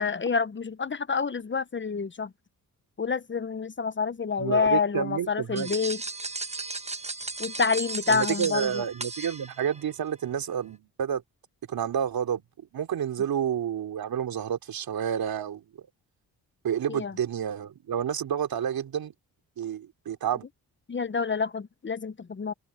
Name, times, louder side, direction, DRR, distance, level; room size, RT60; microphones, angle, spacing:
voice 1, 0.0-2.3 3.0-6.0 7.4-8.8 16.9-17.2 20.9-22.5, left 5 dB, 30° left, 0.9 m, -28 dB
voice 2, 4.4-5.7 8.1-11.2 11.7-12.4 12.7-15.6 16.6-19.1 19.6-20.4, right 8 dB, 75° right, 3.2 m, -29 dB
sound 1, 5.6-9.8, right 3 dB, 20° right, 1.3 m, -35 dB
cardioid pair, 60°, 36 cm